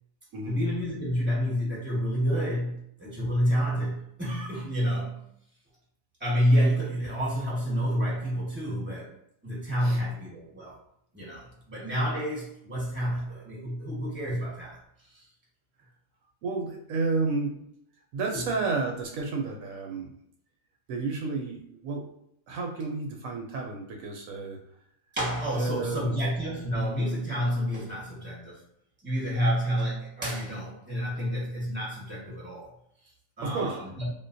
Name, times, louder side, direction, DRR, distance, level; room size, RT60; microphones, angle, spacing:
voice 1, 0.4-5.2 6.2-9.1 9.4-10.8 11.1-14.8 15.1-15.3 18.3-18.4 25.1-28.6 29.0-32.7 33.4-34.1, equal, 10° right, -6 dB, 1.1 m, -29 dB
voice 2, 16.4-17.7 18.1-20.1 20.9-22.1 22.5-24.6 25.5-26.2 33.4-33.8, right 3 dB, 75° right, 1 dB, 1.0 m, -31 dB
3.7 x 2.2 x 2.6 m, 0.73 s
omnidirectional pair, 1.4 m